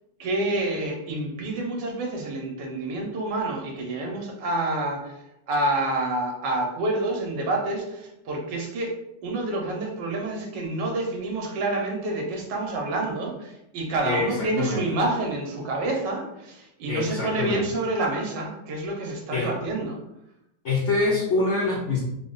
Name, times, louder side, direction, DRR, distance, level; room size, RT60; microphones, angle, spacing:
voice 1, 0.2-8.9 9.2-20.0, right 2 dB, 80° right, 1 dB, 1.5 m, -28 dB
voice 2, 14.0-14.8 16.9-17.6 19.3-19.5 20.6-22.0, left 3 dB, 80° left, -2 dB, 0.6 m, -25 dB
3.7 x 2.1 x 3.8 m, 0.84 s
omnidirectional pair, 1.9 m